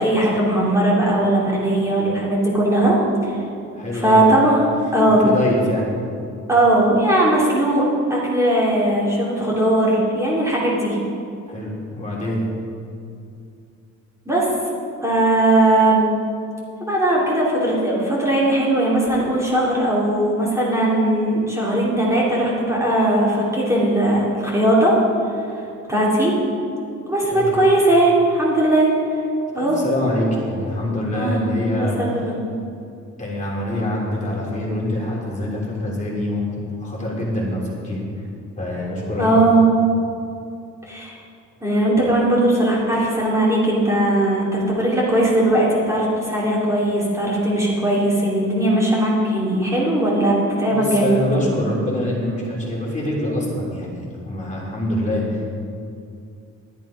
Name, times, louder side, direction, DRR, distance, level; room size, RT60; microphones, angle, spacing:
voice 1, 0.0-3.4 3.9-4.7 4.9-5.2 6.5-7.8 8.1-11.0 14.2-14.5 15.0-16.1 16.8-24.9 25.3-25.5 25.9-26.4 27.1-28.9 29.5-29.8 31.1-31.4 31.8-32.4 39.2-39.6 40.9-41.1 41.6-51.2, right 1 dB, 10° right, -6 dB, 3.1 m, -18 dB
voice 2, 3.7-4.2 5.2-5.9 11.5-12.4 27.3-27.6 29.5-32.0 33.2-38.0 38.6-39.4 50.7-55.2, left 1 dB, 25° left, -6 dB, 3.2 m, -25 dB
11.5 x 9.2 x 5.1 m, 2.5 s
cardioid pair, 90°, 30 cm